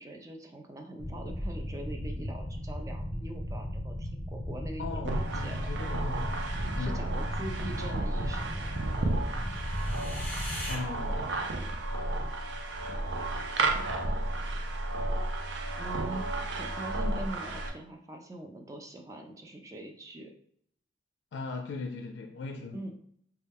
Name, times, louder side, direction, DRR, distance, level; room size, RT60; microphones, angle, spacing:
voice 1, 0.0-5.6 6.8-9.6 11.5-11.7 15.8-16.2 16.5-20.3 22.7-22.9, right 1 dB, 20° right, 3 dB, 0.4 m, -43 dB
Low rumble and reverse scream, 1.0-10.8, equal, 10° left, 0.8 m, -36 dB
voice 2, 4.8-6.5 6.8-7.2 10.7-11.4 21.3-22.8, left 3 dB, 85° left, 4 dB, 0.4 m, -38 dB
sound 1, 5.0-17.7, right 2 dB, 85° right, 0.5 m, -33 dB
4.1 x 2.2 x 3.4 m, 0.65 s
head